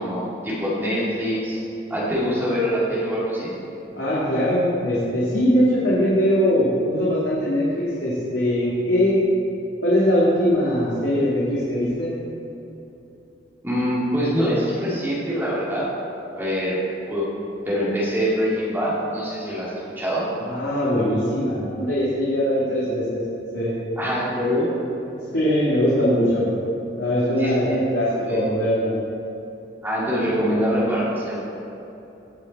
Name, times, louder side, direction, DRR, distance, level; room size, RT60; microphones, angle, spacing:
voice 1, 0.0-1.6 1.9-3.5 13.6-15.9 16.3-17.3 17.7-20.3 24.0-24.7 27.4-27.8 28.3-28.4 29.8-31.4, equal, 10° right, -8 dB, 2.3 m, -24 dB
voice 2, 3.9-9.2 9.8-12.2 20.4-23.2 23.5-23.8 25.3-26.5 26.9-29.0, equal, 80° left, -8 dB, 2.2 m, -21 dB
17.0 x 6.2 x 4.1 m, 2.9 s
head